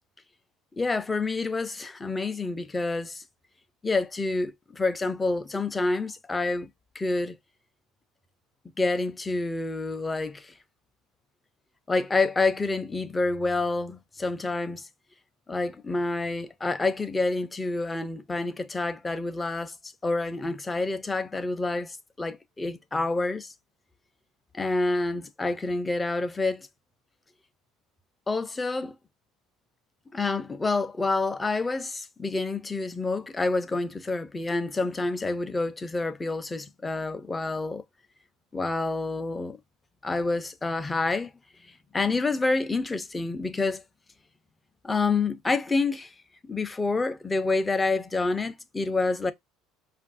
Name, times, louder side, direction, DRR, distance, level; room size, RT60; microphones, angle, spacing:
voice 1, 0.8-3.2 3.8-6.7 6.9-7.4 8.8-10.5 11.9-14.9 15.5-19.7 20.0-23.5 24.5-26.7 28.3-28.9 30.1-37.8 38.5-39.6 40.0-41.3 41.9-43.8 44.8-46.1 46.4-49.3, left 3 dB, 15° left, 0.5 m, -28 dB
5.2 x 2.5 x 2.4 m
cardioid pair, 125°, 0 cm